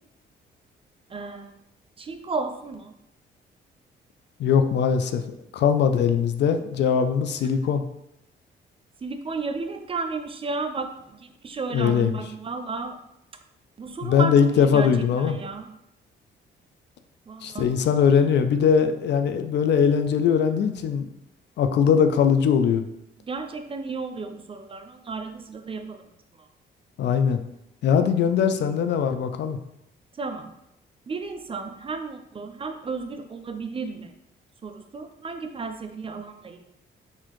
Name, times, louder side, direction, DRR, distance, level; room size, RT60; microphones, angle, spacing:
voice 1, 1.1-1.6 2.0-2.9 9.0-13.0 13.8-15.7 17.3-17.7 23.2-26.0 26.3-26.5 30.1-30.5 31.1-34.1 34.6-36.6, right 4 dB, 30° right, 6 dB, 0.4 m, -33 dB
voice 2, 4.4-5.2 5.5-7.8 11.7-12.2 14.0-15.4 17.4-21.1 21.6-22.9 27.0-27.4 27.8-29.6, left 7 dB, 60° left, 9 dB, 0.4 m, -21 dB
4.1 x 2.7 x 3.0 m, 0.82 s
cardioid pair, 90°, 20 cm